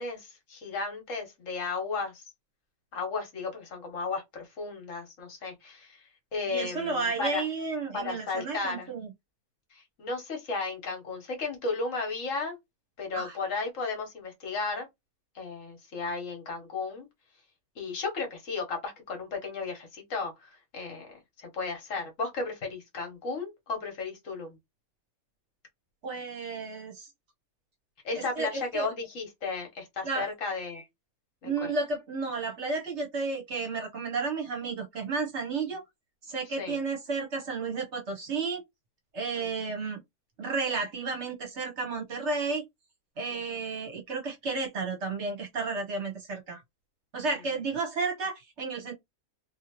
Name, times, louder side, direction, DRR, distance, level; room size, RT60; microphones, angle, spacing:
voice 1, 0.0-2.2 2.9-6.0 6.3-7.4 7.9-8.9 9.7-12.6 13.0-14.9 15.3-17.1 17.8-24.6 28.0-30.9 31.4-31.7 36.6-36.8 39.3-39.5 43.3-43.6, left 4 dB, 60° left, 1.3 m, -34 dB
voice 2, 6.5-9.1 13.2-13.4 26.0-27.1 28.4-28.9 30.0-30.3 31.4-35.8 36.3-38.6 39.1-40.0 40.4-42.6 43.2-46.6 47.1-48.9, right 4 dB, 55° right, 1.0 m, -32 dB
2.7 x 2.6 x 2.9 m
omnidirectional pair, 1.6 m